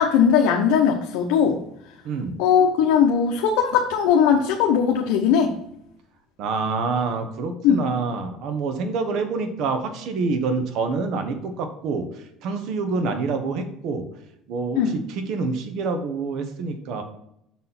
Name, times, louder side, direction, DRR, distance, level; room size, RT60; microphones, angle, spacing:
voice 1, 0.0-1.6 2.4-5.6 7.6-7.8 14.7-15.0, left 7 dB, 80° left, 2 dB, 0.8 m, -19 dB
voice 2, 2.0-2.4 6.4-12.0 12.4-14.1 14.5-17.0, right 4 dB, 65° right, 7 dB, 1.1 m, -27 dB
6.2 x 4.2 x 5.8 m, 0.76 s
cardioid pair, 120°, 0 cm